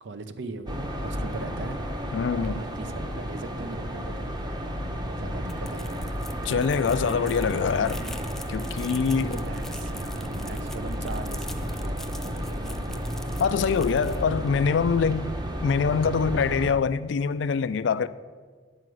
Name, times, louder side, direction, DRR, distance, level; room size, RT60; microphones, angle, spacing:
voice 1, 0.0-4.4 5.0-6.2 8.9-12.9, right 3 dB, 85° right, 0.7 m, -40 dB
sound 1, 0.7-16.7, equal, 25° right, 0.8 m, -32 dB
voice 2, 2.1-2.5 6.5-8.0 8.5-9.4 13.4-15.3 15.6-18.1, left 6 dB, 85° left, 0.4 m, -24 dB
sound 2, 5.3-14.6, left 1 dB, ahead, 0.3 m, -43 dB
9.5 x 4.8 x 7.6 m
head